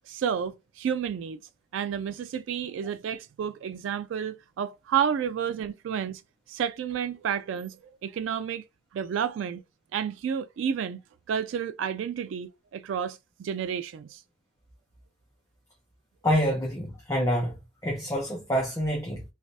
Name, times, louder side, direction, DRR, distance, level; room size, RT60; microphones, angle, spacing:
voice 1, 0.1-1.4 1.7-6.2 6.5-8.6 8.9-9.6 9.9-11.0 11.3-14.2, right 8 dB, 75° right, 0.3 m, -31 dB
voice 2, 16.2-17.6 17.8-19.2, equal, 15° left, 0.8 m, -27 dB
3.3 x 3.2 x 2.7 m
head